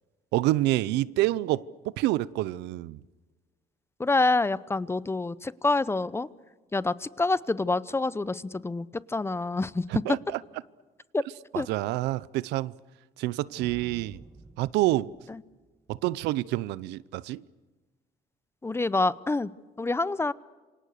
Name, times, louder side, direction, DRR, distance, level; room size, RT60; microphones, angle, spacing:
voice 1, 0.3-1.6 2.0-3.0 9.9-10.4 11.5-12.7 13.2-14.2 14.6-15.1 15.9-17.4, right 16 dB, 90° right, 0.7 m, -27 dB
voice 2, 4.0-6.3 6.7-10.2 11.1-11.2 11.5-11.7 15.3-15.4 18.6-19.5 19.8-20.3, left 3 dB, 15° left, 0.8 m, -27 dB
sound 1, 13.5-16.0, right 2 dB, 15° right, 1.4 m, -50 dB
27.5 x 25.5 x 6.6 m
cardioid pair, 110°, 17 cm